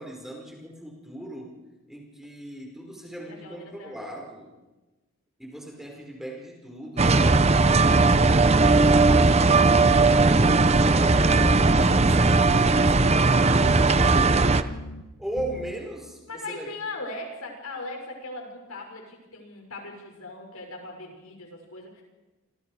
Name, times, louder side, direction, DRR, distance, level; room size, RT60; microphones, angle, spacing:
voice 1, 0.0-1.5 1.9-4.5 5.4-7.5 9.9-14.7 15.2-16.2 16.5-16.7, right 1 dB, ahead, -1 dB, 5.2 m, -38 dB
voice 2, 3.3-4.2 7.1-8.7 16.3-22.0, left 2 dB, 80° left, 2 dB, 6.4 m, -40 dB
sound 1, 7.0-14.6, right 3 dB, 30° right, 0.8 m, -18 dB
sound 2, 11.1-11.5 11.8-12.2 12.5-12.9 13.2-13.6 14.0-14.3 14.7-15.0 15.4-15.7, left 1 dB, 50° left, 1.5 m, -38 dB
27.5 x 27.5 x 5.0 m, 1.1 s
head